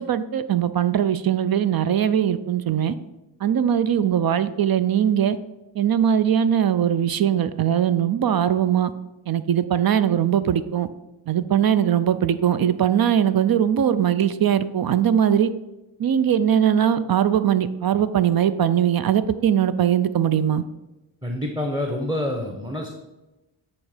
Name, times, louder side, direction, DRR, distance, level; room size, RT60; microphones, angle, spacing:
voice 1, 0.0-2.9 3.4-5.4 5.8-8.9 9.3-10.9 11.3-15.5 16.0-20.6, right 9 dB, 50° right, 13 dB, 0.5 m, -20 dB
voice 2, 21.2-22.9, left 1 dB, 10° right, 2 dB, 0.9 m, -27 dB
8.5 x 3.5 x 5.0 m, 1.0 s
cardioid pair, 60°, 48 cm